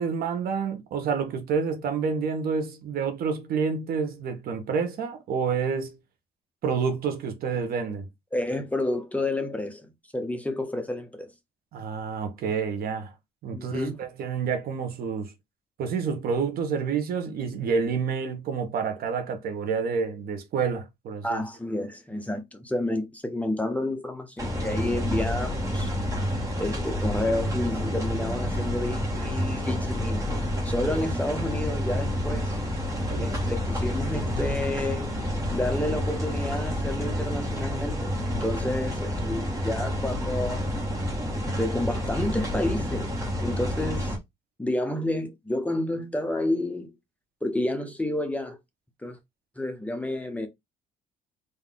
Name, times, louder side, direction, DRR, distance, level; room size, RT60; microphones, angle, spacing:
voice 1, 0.0-6.0 6.6-8.0 11.7-13.1 13.4-15.3 15.8-21.4 33.1-33.3, right 6 dB, 60° right, 1.2 m, -28 dB
voice 2, 8.3-11.3 13.5-14.0 21.2-25.9 26.6-30.3 30.6-32.6 33.2-35.1 35.5-40.7 41.3-43.1 43.4-44.2 44.6-46.9 47.4-48.6 49.0-49.2 49.6-50.5, left 1 dB, 10° left, 0.8 m, -30 dB
sound 1, 24.4-44.2, equal, 20° right, 1.6 m, -29 dB
3.9 x 2.8 x 3.6 m
cardioid pair, 110°, 17 cm